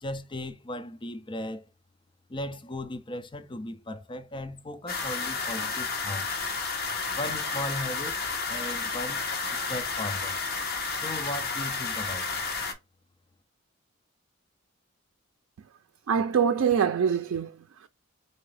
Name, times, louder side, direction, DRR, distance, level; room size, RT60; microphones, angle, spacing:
voice 1, 0.0-1.6 2.3-6.3 7.1-8.2 8.5-9.2 9.5-10.4 10.9-12.4, left 1 dB, 25° left, 0.6 m, -37 dB
sound 1, 4.9-12.7, left 4 dB, 50° left, 1.0 m, -31 dB
voice 2, 16.1-17.9, right 7 dB, 85° right, 0.4 m, -25 dB
3.8 x 2.7 x 3.2 m
head